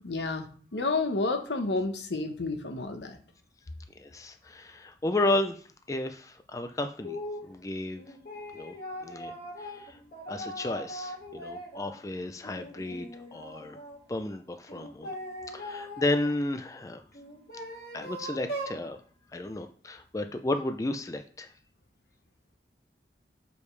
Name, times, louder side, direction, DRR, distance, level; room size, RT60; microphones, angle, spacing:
voice 1, 0.0-0.5 0.7-3.2, left 3 dB, 80° left, 6 dB, 0.9 m, -30 dB
voice 2, 4.0-8.0 8.5-8.7 9.0-10.0 10.3-13.8 14.1-15.1 15.5-17.0 17.9-19.0 19.3-21.5, left 2 dB, 20° left, 7 dB, 0.4 m, -33 dB
sound 1, 7.0-7.5 8.0-12.0 12.4-14.0 14.7-16.3 17.1-18.8, equal, 55° left, 2.5 m, -40 dB
6.5 x 5.3 x 3.2 m, 0.44 s
head